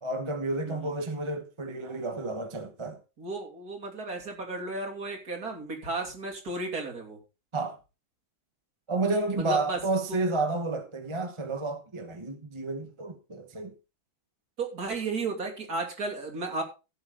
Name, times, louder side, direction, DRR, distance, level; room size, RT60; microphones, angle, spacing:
voice 1, 0.0-3.0 7.5-7.8 8.9-13.7, right 2 dB, 20° right, 0.9 m, -31 dB
voice 2, 3.2-7.2 9.4-9.8 10.1-10.2 14.6-16.6, right 3 dB, 45° right, 3.3 m, -34 dB
16.0 x 7.2 x 3.9 m
omnidirectional pair, 2.2 m